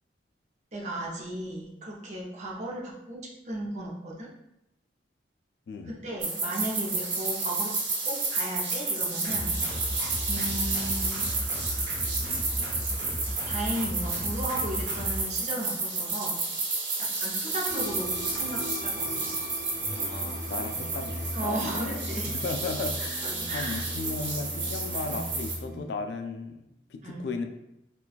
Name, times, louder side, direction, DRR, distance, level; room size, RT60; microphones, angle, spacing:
voice 1, 0.7-4.3 6.0-7.7 8.0-9.6 10.3-11.3 13.4-16.4 17.2-19.3 21.3-22.3 23.2-23.8 27.0-27.3, right 1 dB, 40° right, -3 dB, 0.6 m, -35 dB
voice 2, 5.7-6.0 20.1-22.0 22.3-27.4, left 3 dB, 60° left, 6 dB, 0.3 m, -35 dB
sound 1, 6.2-25.5, right 3 dB, 85° right, 1.1 m, -31 dB
Dist Hard kicks, 9.2-15.2, equal, 70° right, 0.8 m, -35 dB
sound 2, 17.7-25.8, left 1 dB, 10° right, 1.0 m, -38 dB
4.0 x 2.3 x 2.3 m, 0.85 s
head